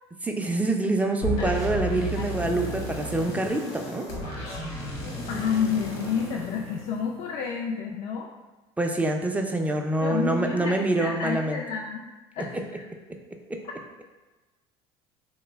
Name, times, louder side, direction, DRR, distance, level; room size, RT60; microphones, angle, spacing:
voice 1, 0.2-4.1 8.8-11.6 13.5-13.6, right 2 dB, 10° right, 4 dB, 0.4 m, -26 dB
sound 1, 1.2-7.4, equal, 80° left, 1.0 m, -33 dB
voice 2, 5.0-8.3 10.0-12.1 12.4-12.8, left 6 dB, 60° left, -1 dB, 0.4 m, -30 dB
3.3 x 2.1 x 3.3 m, 1.2 s
supercardioid pair, 85°, 13 cm